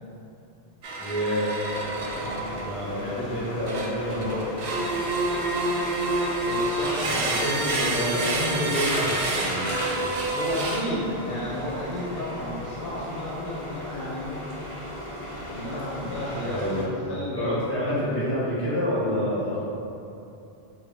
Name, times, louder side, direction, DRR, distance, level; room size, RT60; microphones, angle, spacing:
sound 1, 0.8-2.8 3.7-11.1 11.9-12.2, right 2 dB, 70° right, 0.7 m, -28 dB
voice 1, 1.0-1.5 2.6-4.6 7.0-9.8 16.5-16.9 17.3-19.6, equal, 15° left, -11 dB, 1.4 m, -28 dB
sound 2, 1.7-16.8, equal, 35° left, 0.7 m, -36 dB
voice 2, 2.1-2.5 6.4-8.6 10.3-14.4 15.5-17.6, left 1 dB, 65° left, -8 dB, 0.9 m, -33 dB
4.5 x 2.3 x 3.5 m, 2.8 s
omnidirectional pair, 1.1 m